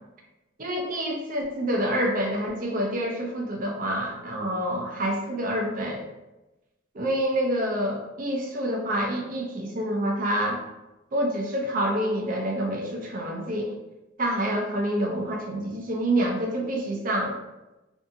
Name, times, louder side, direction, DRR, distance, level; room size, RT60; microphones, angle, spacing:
voice 1, 0.6-6.1 6.9-10.6 11.1-13.7 14.2-17.4, right 1 dB, 45° right, 0 dB, 0.5 m, -27 dB
2.6 x 2.5 x 2.6 m, 1.0 s
head